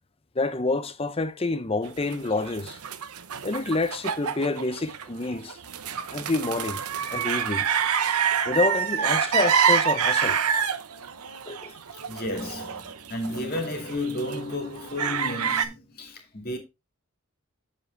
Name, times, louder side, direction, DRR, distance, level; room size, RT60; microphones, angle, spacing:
voice 1, 0.4-2.8 3.4-5.6 6.1-6.8 7.1-7.7 8.4-10.4 11.5-11.7, left 3 dB, 25° left, 0.7 m, -28 dB
sound 1, 2.1-15.7, right 7 dB, 90° right, 0.9 m, -27 dB
voice 2, 12.1-16.6, left 1 dB, 45° left, 2.2 m, -32 dB
8.0 x 7.0 x 3.2 m
head